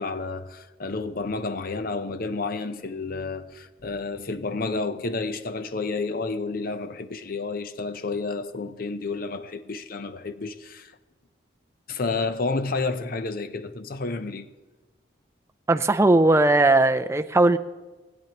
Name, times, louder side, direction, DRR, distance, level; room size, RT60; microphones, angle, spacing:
voice 1, 0.0-10.9 11.9-14.5, left 3 dB, 50° left, 0.6 m, -30 dB
voice 2, 15.7-17.6, right 2 dB, 15° right, 0.4 m, -18 dB
20.0 x 9.1 x 2.9 m
head